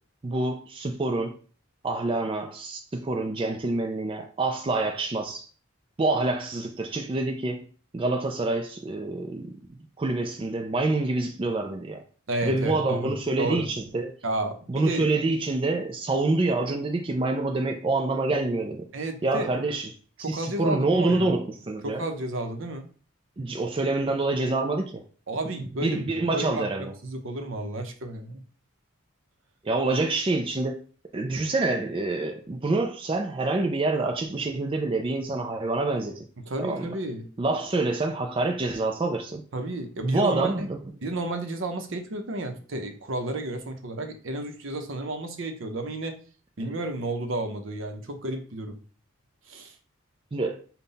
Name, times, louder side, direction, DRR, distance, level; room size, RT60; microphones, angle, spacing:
voice 1, 0.2-1.3 1.8-5.5 6.0-7.6 7.9-9.5 10.0-12.0 12.4-14.1 14.7-18.8 19.2-19.9 20.3-22.0 23.4-25.0 25.6-26.9 29.6-30.8 31.1-36.3 36.6-36.9 37.4-39.4 40.0-40.8 50.3-50.6, right 2 dB, 25° right, 0.3 m, -26 dB
voice 2, 12.3-13.7 14.2-15.1 18.9-19.5 20.2-21.3 21.8-22.9 25.3-28.4 36.4-37.3 39.5-40.7 41.0-46.2 46.6-48.8 49.5-49.8, right 2 dB, 65° right, 0.7 m, -32 dB
5.5 x 2.2 x 4.0 m
head